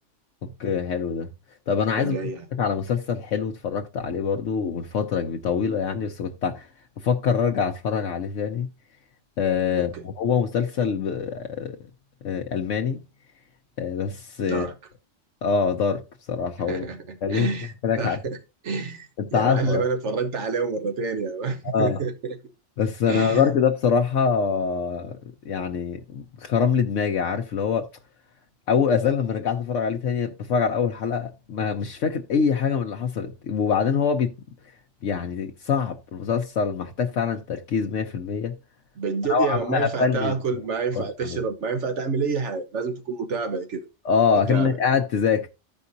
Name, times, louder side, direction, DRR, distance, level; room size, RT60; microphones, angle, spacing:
voice 1, 0.4-1.3 1.7-2.2 2.6-6.7 7.0-8.7 9.4-11.8 12.2-13.0 13.8-14.7 15.4-16.0 16.3-16.8 17.2-17.5 17.8-18.2 19.3-19.8 21.6-22.0 22.8-25.1 25.4-27.9 28.7-34.3 35.0-38.5 39.3-40.3 40.9-41.4 44.0-45.5, left 6 dB, 80° left, 1.1 m, -24 dB
voice 2, 2.0-2.5 9.7-10.1 14.5-14.7 16.7-18.4 18.6-22.4 23.1-23.5 39.0-43.9 44.5-44.8, right 4 dB, 75° right, 1.4 m, -28 dB
14.5 x 5.2 x 2.6 m
omnidirectional pair, 1.2 m